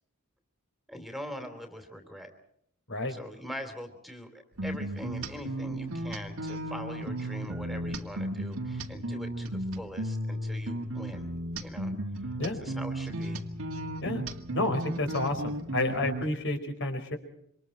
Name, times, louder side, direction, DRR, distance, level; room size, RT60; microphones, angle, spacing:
voice 1, 0.9-2.3 3.1-11.3 11.6-11.9 12.6-13.4, equal, ahead, 6 dB, 3.1 m, -42 dB
sound 1, 4.6-16.3, right 1 dB, 70° right, 2.0 m, -35 dB
voice 2, 14.5-17.2, left 2 dB, 60° left, 6 dB, 4.9 m, -30 dB
27.5 x 25.0 x 4.4 m, 0.71 s
head